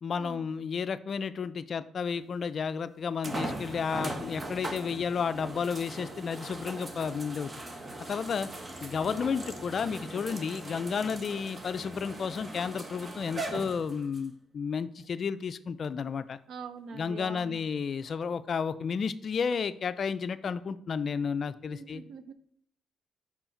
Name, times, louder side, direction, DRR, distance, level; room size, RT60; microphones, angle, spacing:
voice 1, 0.0-7.5 8.1-8.5 8.8-16.4 16.9-22.0, left 6 dB, 50° left, 13 dB, 0.4 m, -32 dB
sound 1, 2.2-2.3 3.2-14.3 15.0-15.1 18.5-18.6, right 2 dB, 25° right, 0.9 m, -40 dB
voice 2, 16.5-17.6 21.7-22.3, right 5 dB, 70° right, 11 dB, 0.6 m, -44 dB
5.7 x 4.5 x 4.3 m, 0.71 s
cardioid pair, 90°, 0 cm